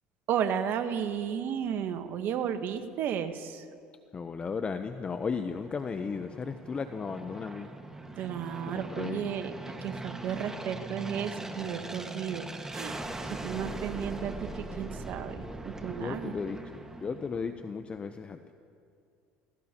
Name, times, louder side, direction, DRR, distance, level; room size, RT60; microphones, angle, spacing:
voice 1, 0.3-3.6 8.2-9.5 9.8-13.0 13.4-16.3, right 8 dB, 55° right, 8 dB, 1.2 m, -33 dB
voice 2, 4.1-7.7 8.7-9.3 15.9-18.4, left 5 dB, 30° left, 8 dB, 0.7 m, -35 dB
Aircraft, 4.9-17.7, right 2 dB, 15° right, 1.6 m, -41 dB
29.0 x 16.5 x 2.9 m, 2.4 s
supercardioid pair, 85°, 4 cm